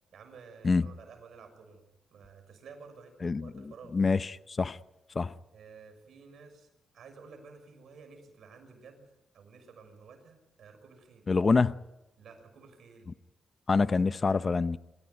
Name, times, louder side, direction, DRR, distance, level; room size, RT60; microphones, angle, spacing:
voice 1, 0.1-1.8 2.1-3.1 3.4-4.3 5.5-6.7 6.9-9.1 9.3-11.2 12.2-13.1, right 5 dB, 75° right, 6.4 m, -52 dB
voice 2, 3.9-4.3 4.6-4.8 5.1-5.3 11.3-11.8 13.7-14.8, left 4 dB, 35° left, 0.8 m, -25 dB
26.5 x 15.5 x 9.4 m
cardioid pair, 90°, 0 cm